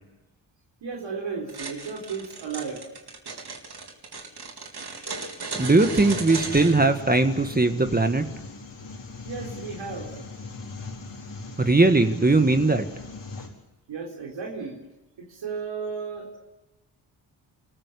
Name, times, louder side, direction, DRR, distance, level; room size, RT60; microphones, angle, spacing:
voice 1, 0.8-2.8 9.2-10.1 13.9-14.7 15.3-16.3, right 5 dB, 80° right, -2 dB, 4.2 m, -34 dB
sound 1, 1.5-6.8, right 4 dB, 55° right, 3.8 m, -35 dB
sound 2, 5.5-13.5, left 3 dB, 65° left, 4.5 m, -39 dB
voice 2, 5.6-8.3 11.6-12.8, right 2 dB, 20° right, 7 dB, 1.5 m, -20 dB
28.5 x 14.5 x 8.4 m, 1.0 s
cardioid pair, 65°, 45 cm